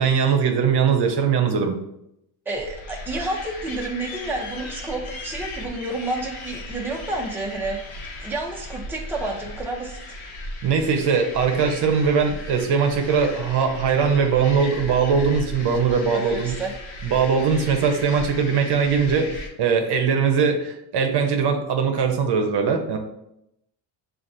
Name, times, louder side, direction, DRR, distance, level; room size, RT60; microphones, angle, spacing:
voice 1, 0.0-1.8 10.6-16.6 17.0-23.0, right 6 dB, 55° right, 4 dB, 0.8 m, -21 dB
sound 1, 2.5-19.5, left 1 dB, 75° left, 1.0 m, -37 dB
voice 2, 2.5-7.8 8.2-10.0 16.1-16.7, right 2 dB, 5° right, -1 dB, 0.6 m, -30 dB
7.1 x 2.5 x 2.6 m, 0.81 s
cardioid pair, 120°, 47 cm